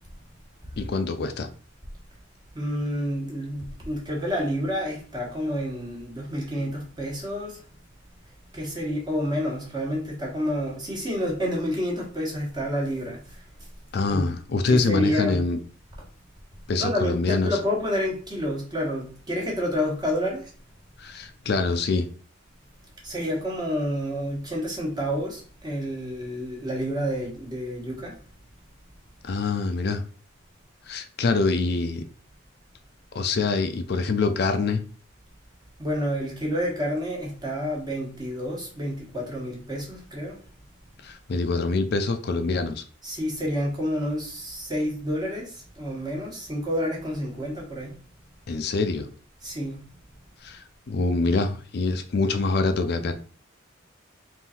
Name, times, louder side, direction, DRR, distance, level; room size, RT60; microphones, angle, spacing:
voice 1, 0.8-1.5 13.9-15.6 16.7-17.6 21.0-22.1 29.2-30.0 30.8-32.1 33.1-34.8 41.0-42.8 48.5-49.1 50.4-53.1, left 3 dB, 50° left, 0.4 m, -25 dB
voice 2, 2.5-7.6 8.5-13.4 14.1-14.3 14.7-15.4 16.8-20.5 23.0-28.2 35.8-40.4 43.0-47.9 49.4-49.8, equal, 20° right, 1.3 m, -29 dB
3.7 x 2.6 x 4.2 m
head